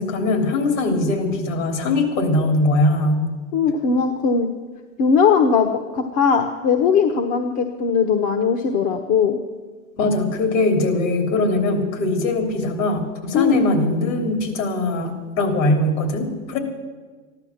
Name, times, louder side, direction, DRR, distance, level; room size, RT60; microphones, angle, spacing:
voice 1, 0.0-3.3 10.0-16.6, left 2 dB, 70° left, 5 dB, 3.4 m, -21 dB
voice 2, 3.5-4.5 5.0-9.4 13.3-13.6, left 6 dB, 55° left, 5 dB, 1.3 m, -19 dB
14.5 x 11.5 x 7.3 m, 1.4 s
hypercardioid pair, 110°, 40 cm